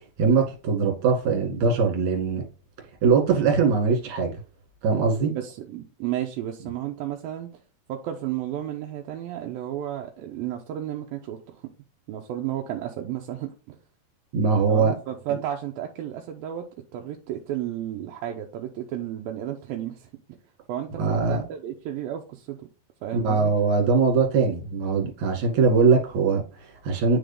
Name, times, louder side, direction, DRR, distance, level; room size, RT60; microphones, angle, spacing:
voice 1, 0.2-2.4 3.0-4.3 4.8-5.3 14.3-14.9 21.0-21.4 23.1-27.2, right 5 dB, 50° right, 2.9 m, -21 dB
voice 2, 5.3-7.6 7.9-11.6 12.1-13.8 14.7-16.7 16.9-20.4 20.7-22.7 23.0-23.5, right 11 dB, 80° right, 2.2 m, -33 dB
10.0 x 3.8 x 3.4 m
omnidirectional pair, 4.9 m